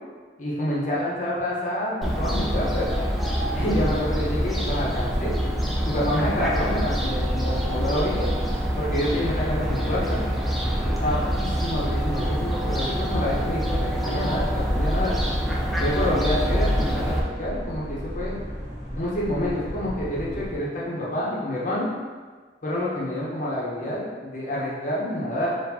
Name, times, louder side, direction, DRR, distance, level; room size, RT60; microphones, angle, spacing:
voice 1, 0.4-2.9 3.5-5.4 5.8-8.3 8.8-10.2 10.8-15.1 15.7-18.4 19.0-21.9 22.6-25.6, left 1 dB, 45° left, -6 dB, 1.1 m, -28 dB
Fowl, 2.0-17.2, equal, ahead, 0.4 m, -26 dB
sound 1, 3.3-20.5, equal, 45° right, 1.4 m, -35 dB
4.3 x 3.2 x 2.8 m, 1.5 s
head